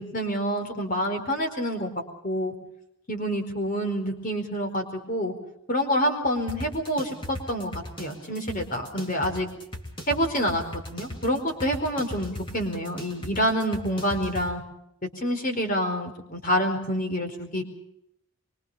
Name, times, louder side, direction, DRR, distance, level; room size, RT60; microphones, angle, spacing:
voice 1, 0.0-1.9 2.2-2.5 3.1-5.3 5.7-9.5 10.1-14.6 15.2-17.6, equal, 40° left, 5 dB, 4.5 m, -27 dB
sound 1, 6.5-14.5, left 1 dB, 25° left, 3.8 m, -38 dB
24.5 x 24.5 x 5.6 m, 0.80 s
head